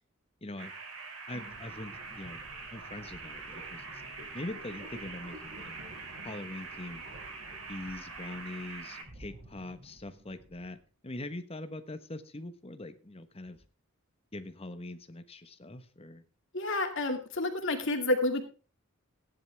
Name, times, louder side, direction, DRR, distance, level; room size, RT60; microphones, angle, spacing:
voice 1, 0.4-0.7 1.3-2.4 2.7-3.9 4.3-5.7 6.2-7.0 7.7-10.8 11.0-13.6 14.3-16.2, left 1 dB, 25° left, 10 dB, 1.2 m, -42 dB
sound 1, 0.6-9.0, right 4 dB, 90° right, 4.1 m, -44 dB
sound 2, 1.3-10.8, equal, 60° right, 5.7 m, -52 dB
voice 2, 16.5-18.4, left 2 dB, 60° left, 4 dB, 2.3 m, -29 dB
16.0 x 10.5 x 3.5 m, 0.35 s
head